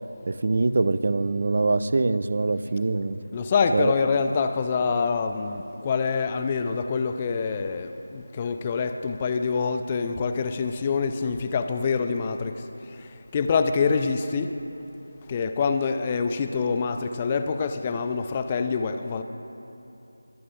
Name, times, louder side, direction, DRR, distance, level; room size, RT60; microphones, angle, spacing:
voice 1, 0.3-3.2 3.7-3.9, right 3 dB, 45° right, 13 dB, 0.4 m, -23 dB
voice 2, 3.3-14.6 15.3-19.2, left 5 dB, 20° left, 8 dB, 0.4 m, -26 dB
21.5 x 9.4 x 3.5 m, 3.0 s
figure-of-eight pair, 165°, 0 cm